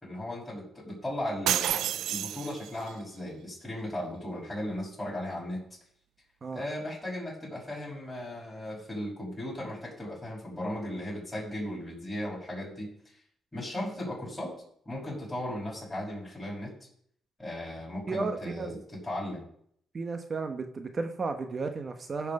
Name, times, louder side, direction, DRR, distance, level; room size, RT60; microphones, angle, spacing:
voice 1, 0.0-5.6 6.5-12.9 13.5-14.5 14.9-16.7 17.4-19.4, left 1 dB, 10° left, -6 dB, 5.7 m, -36 dB
sound 1, 1.5-2.9, right 11 dB, 80° right, 0.4 m, -29 dB
voice 2, 18.1-18.8 19.9-22.3, right 4 dB, 35° right, 6 dB, 1.1 m, -33 dB
15.0 x 6.0 x 5.3 m, 0.65 s
cardioid pair, 90°, 0 cm